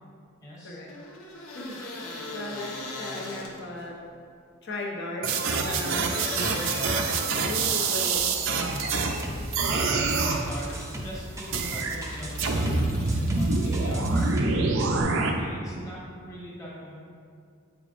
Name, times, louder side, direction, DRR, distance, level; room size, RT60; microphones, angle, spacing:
voice 1, 0.4-0.8 9.7-10.7 11.0-12.8 13.4-17.0, equal, 15° left, -6 dB, 1.2 m, -40 dB
sound 1, 0.9-3.9 5.9-7.8 9.5-11.0 12.0-14.0, left 2 dB, 75° left, 1.1 m, -39 dB
voice 2, 1.5-4.0 4.6-6.2 7.4-8.2, left 1 dB, 55° left, -2 dB, 0.9 m, -36 dB
sound 2, 5.2-9.2 9.5-10.4 11.5-12.0 12.4-15.3, right 3 dB, 60° right, 0.5 m, -26 dB
sound 3, 8.2-15.0, right 1 dB, 15° right, 0.5 m, -38 dB
8.2 x 4.8 x 2.5 m, 2.3 s
head